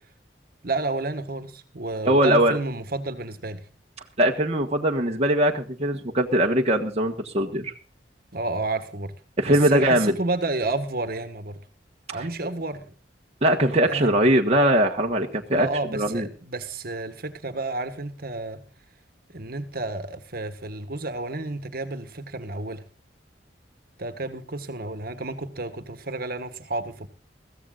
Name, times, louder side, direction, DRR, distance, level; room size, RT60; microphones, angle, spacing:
voice 1, 0.6-3.6 8.3-9.1 9.4-11.6 12.1-12.9 13.9-14.1 15.5-18.6 19.3-22.9 24.0-27.1, right 2 dB, 55° right, 10 dB, 1.6 m, -31 dB
voice 2, 2.1-2.6 4.2-7.7 9.4-10.1 12.1-12.3 13.4-15.7 15.9-16.3, right 1 dB, 35° right, 1 dB, 1.4 m, -21 dB
21.5 x 15.5 x 2.5 m, 0.37 s
head